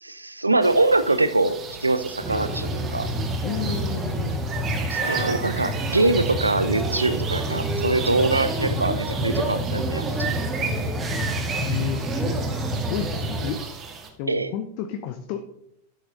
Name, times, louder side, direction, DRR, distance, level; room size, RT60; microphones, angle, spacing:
voice 1, 0.0-3.1 4.9-10.3 14.3-14.5, right 2 dB, 80° right, 13 dB, 0.6 m, -23 dB
sound 1, 0.6-14.1, right 6 dB, 25° right, 1.7 m, -35 dB
sound 2, 2.2-13.5, right 1 dB, 10° right, 1.9 m, -28 dB
voice 2, 3.4-4.4 11.5-12.3 12.9-13.6 14.2-15.4, left 9 dB, 45° left, 8 dB, 0.8 m, -31 dB
Brass instrument, 5.0-9.2, left 1 dB, 70° left, 1.6 m, -42 dB
12.0 x 7.0 x 3.9 m, 0.72 s
figure-of-eight pair, 90°, 0 cm